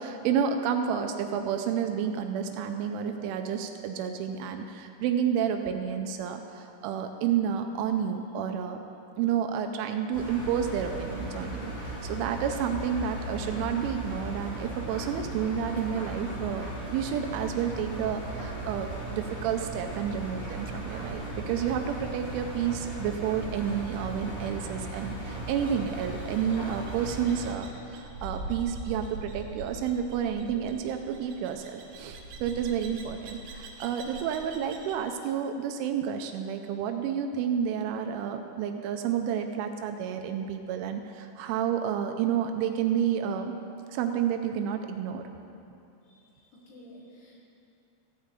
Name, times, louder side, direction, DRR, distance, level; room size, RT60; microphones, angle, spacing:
voice 1, 0.0-8.8 9.2-16.7 16.9-43.5 43.9-45.3, right 8 dB, 85° right, 6 dB, 2.9 m, -30 dB
Engine, 10.1-27.5, right 1 dB, 35° left, 2.7 m, -37 dB
sound 1, 25.5-35.0, right 3 dB, 65° right, 2.8 m, -43 dB
voice 2, 46.0-47.4, equal, 65° left, -4 dB, 3.4 m, -52 dB
14.5 x 5.0 x 8.1 m, 2.7 s
omnidirectional pair, 5.7 m